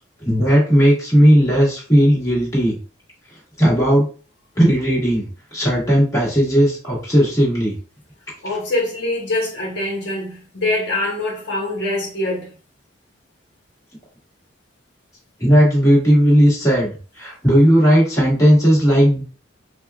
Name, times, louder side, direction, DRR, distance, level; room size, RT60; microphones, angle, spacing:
voice 1, 0.2-2.8 3.6-4.1 4.6-7.8 15.4-16.9 17.2-19.2, equal, 15° left, 1.8 m, -15 dB
voice 2, 8.4-12.5, left 2 dB, 60° left, 1.0 m, -24 dB
4.9 x 2.4 x 2.3 m
head